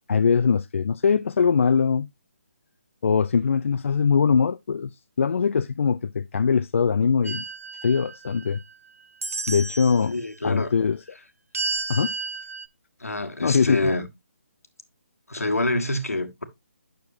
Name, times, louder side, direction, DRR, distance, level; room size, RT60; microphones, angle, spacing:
voice 1, 0.1-2.1 3.0-4.9 5.2-7.4 7.8-8.6 9.5-10.1 10.4-11.0 11.9-12.1 13.4-13.9, left 6 dB, 60° left, 0.4 m, -22 dB
sound 1, 7.2-8.7 9.2-10.1 11.5-12.7, right 3 dB, 80° right, 0.7 m, -32 dB
voice 2, 10.1-10.7 13.0-14.1 15.3-16.4, left 2 dB, 90° left, 1.4 m, -26 dB
8.8 x 6.5 x 2.6 m
figure-of-eight pair, 150°, 8 cm